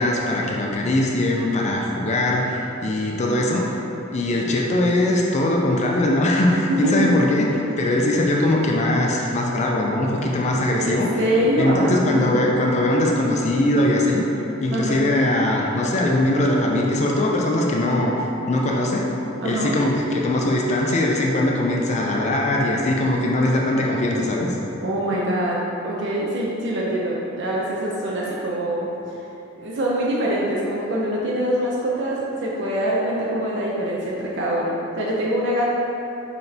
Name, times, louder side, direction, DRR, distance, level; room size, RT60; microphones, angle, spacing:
voice 1, 0.0-3.7 4.1-7.5 7.8-11.1 11.6-14.2 14.6-19.0 19.4-24.6, left 1 dB, 35° left, -1 dB, 0.4 m, -21 dB
voice 2, 6.7-7.3 10.8-12.5 14.7-15.0 19.4-19.7 24.8-28.9 29.6-35.7, equal, 60° right, -4 dB, 0.5 m, -24 dB
5.9 x 3.3 x 2.7 m, 3.0 s
head